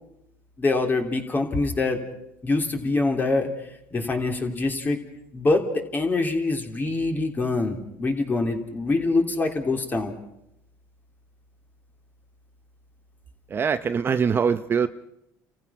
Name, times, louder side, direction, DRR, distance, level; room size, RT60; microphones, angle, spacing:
voice 1, 0.6-2.0 2.4-3.5 3.9-5.0 5.3-5.6 5.9-10.1, left 3 dB, 25° left, 3 dB, 3.2 m, -24 dB
voice 2, 13.5-14.9, right 6 dB, 35° right, 10 dB, 0.7 m, -23 dB
30.0 x 15.0 x 5.8 m, 0.82 s
supercardioid pair, 100°, 7 cm